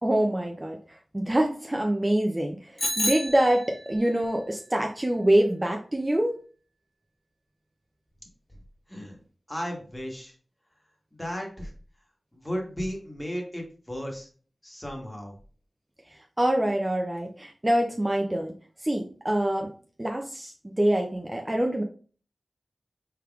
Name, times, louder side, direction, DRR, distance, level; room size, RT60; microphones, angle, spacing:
voice 1, 0.0-0.8 1.1-2.6 3.0-6.3 16.4-18.5 18.8-19.7 20.0-21.8, right 1 dB, 20° right, 2 dB, 0.4 m, -25 dB
Bicycle bell, 2.8-4.0, left 1 dB, 50° left, 1.5 m, -30 dB
voice 2, 9.5-10.3 11.2-11.7 12.3-14.3 14.6-15.3, equal, 15° left, 1 dB, 1.2 m, -34 dB
4.5 x 3.4 x 2.3 m, 0.41 s
wide cardioid pair, 75°, 0 cm